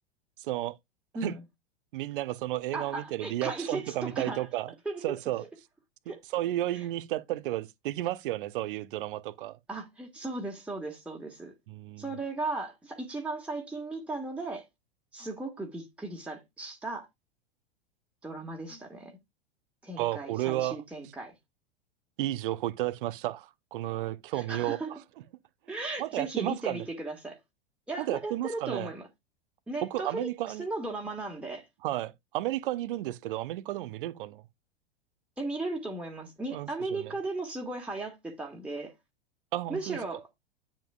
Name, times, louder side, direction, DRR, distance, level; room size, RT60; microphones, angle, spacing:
voice 1, 0.4-0.7 1.2-1.3 1.9-4.7 5.0-5.4 6.3-9.6 11.7-12.0 20.0-20.8 22.2-25.0 26.0-26.8 28.0-28.9 29.8-30.6 31.8-34.4 36.5-37.1 39.5-40.0, right 15 dB, 55° right, 0.8 m, -32 dB
voice 2, 2.7-4.5 4.9-5.0 6.1-6.2 9.7-11.5 12.0-14.7 15.1-17.1 18.2-19.2 19.8-21.3 24.3-24.9 25.7-27.4 27.9-29.1 29.7-30.3 30.6-31.7 35.4-38.9 39.7-40.3, right 2 dB, 5° right, 2.0 m, -36 dB
8.9 x 7.4 x 2.4 m
figure-of-eight pair, 95°, 32 cm